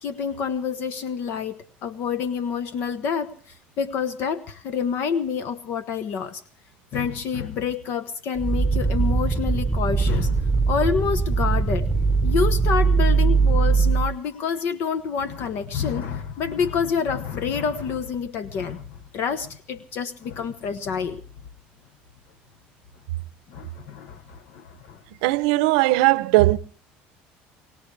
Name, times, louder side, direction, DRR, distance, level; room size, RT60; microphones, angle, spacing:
voice 1, 0.0-6.4 6.9-11.9 12.2-21.2 23.5-25.0, left 6 dB, 60° left, 1.2 m, -28 dB
sound 1, 8.4-14.1, right 4 dB, 5° right, 1.3 m, -21 dB
voice 2, 25.2-26.6, right 19 dB, 90° right, 0.7 m, -18 dB
23.0 x 18.0 x 3.4 m
cardioid pair, 120°, 4 cm